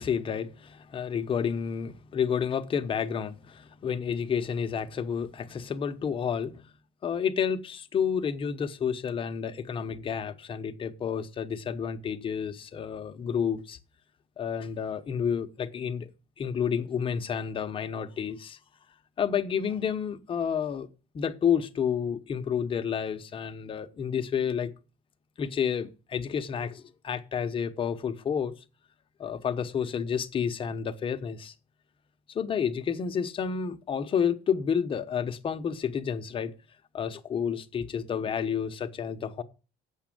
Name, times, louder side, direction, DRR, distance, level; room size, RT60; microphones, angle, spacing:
voice 1, 0.0-6.7 7.0-13.8 14.4-16.1 16.4-18.6 19.2-20.9 21.1-24.7 25.4-28.5 29.2-31.5 32.3-36.5 36.9-39.4, left 7 dB, 35° left, 0.9 m, -30 dB
8.1 x 6.2 x 7.6 m
cardioid pair, 115°, 15 cm